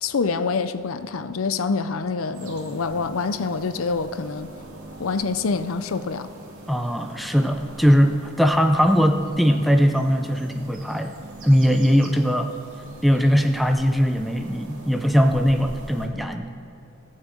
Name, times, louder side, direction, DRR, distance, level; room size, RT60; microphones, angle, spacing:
voice 1, 0.0-4.5 5.0-6.3, left 4 dB, 75° left, 12 dB, 0.5 m, -26 dB
sound 1, 2.3-16.1, right 2 dB, 75° right, 2.2 m, -42 dB
voice 2, 6.7-11.1 11.4-12.5 13.0-16.5, equal, ahead, 6 dB, 0.5 m, -20 dB
15.0 x 6.6 x 7.6 m, 2.5 s
head